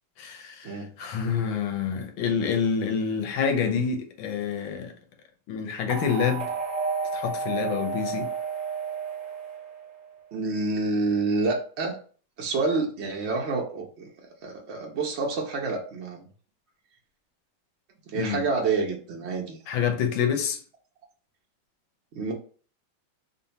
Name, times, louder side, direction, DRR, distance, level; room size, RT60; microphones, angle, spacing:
voice 1, 0.2-4.9 5.5-6.5 7.1-8.3 18.1-18.4 19.7-20.6, left 7 dB, 80° left, 1.4 m, -27 dB
sound 1, 5.9-10.1, right 4 dB, 30° right, 0.9 m, -31 dB
voice 2, 10.3-12.0 12.4-14.1 14.4-16.3 18.1-19.6 22.1-22.3, right 3 dB, 90° right, 0.5 m, -28 dB
3.9 x 2.1 x 4.0 m
omnidirectional pair, 2.2 m